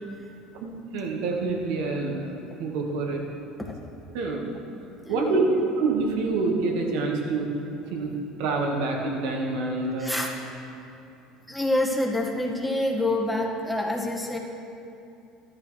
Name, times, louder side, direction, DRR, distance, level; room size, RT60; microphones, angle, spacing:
voice 1, 0.5-2.3 2.6-3.2 4.1-4.4 5.1-5.4 5.8-7.5 7.8-10.2, right 3 dB, 70° right, 1 dB, 1.7 m, -27 dB
voice 2, 5.1-5.5 10.0-10.3 11.5-14.4, left 1 dB, 5° left, -1 dB, 1.8 m, -27 dB
13.5 x 11.5 x 3.3 m, 2.8 s
hypercardioid pair, 75°, 0 cm